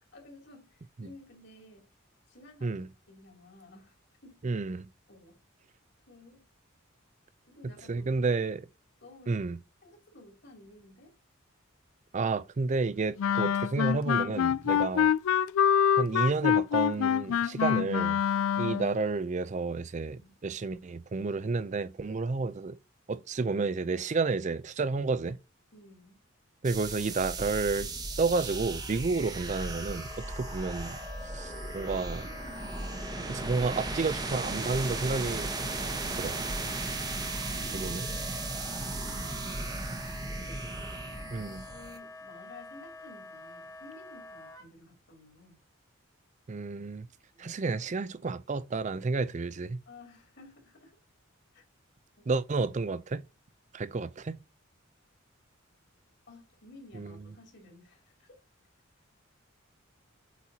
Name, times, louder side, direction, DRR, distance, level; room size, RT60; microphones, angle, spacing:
voice 1, 0.1-1.9 2.3-4.0 4.2-4.4 5.1-5.4 6.1-6.5 7.5-8.1 9.0-9.4 9.8-11.1 14.7-14.9 18.3-18.7 20.1-20.4 25.7-26.2 37.2-40.8 41.1-45.6 47.3-47.6 49.9-50.9 51.5-51.6 52.1-52.2 56.3-58.3, left 2 dB, 55° left, 2.8 m, -54 dB
voice 2, 4.4-4.9 7.9-8.7 9.3-9.6 12.1-15.1 16.0-18.2 18.6-22.8 23.1-25.4 26.6-27.9 28.2-31.0 31.2-32.3 33.3-35.5 36.1-36.4 37.7-38.1 41.3-41.6 46.5-47.1 47.4-49.8 52.3-53.2 53.7-54.4 56.9-57.1, right 4 dB, 35° right, 0.4 m, -31 dB
Wind instrument woodwind instrument, 13.2-18.9, left 9 dB, 80° left, 0.3 m, -26 dB
sound 1, 26.6-42.0, right 2 dB, 20° right, 0.9 m, -36 dB
Wind instrument woodwind instrument 2, 29.4-44.7, left 4 dB, 15° left, 1.0 m, -47 dB
8.0 x 4.4 x 2.8 m
head